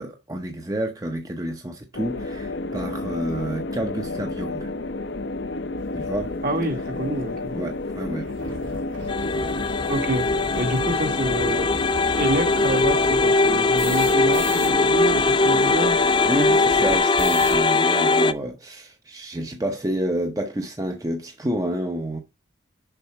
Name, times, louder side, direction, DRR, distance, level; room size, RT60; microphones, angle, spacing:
voice 1, 0.0-4.7 5.9-6.3 7.6-8.3 16.2-22.2, right 1 dB, 20° right, 0.7 m, -29 dB
sound 1, 1.9-17.0, left 2 dB, 65° left, 0.7 m, -31 dB
sound 2, 6.0-6.1 6.8-6.9 7.2-7.3 7.6-7.7 8.0-14.7 15.0-15.1 15.3-17.7, right 2 dB, 90° right, 3.6 m, -37 dB
voice 2, 6.4-7.5 9.9-10.3 10.5-11.7 12.2-16.0, right 1 dB, 45° right, 1.5 m, -27 dB
sound 3, 9.1-18.3, left 3 dB, 25° left, 0.3 m, -21 dB
6.8 x 5.5 x 4.5 m
head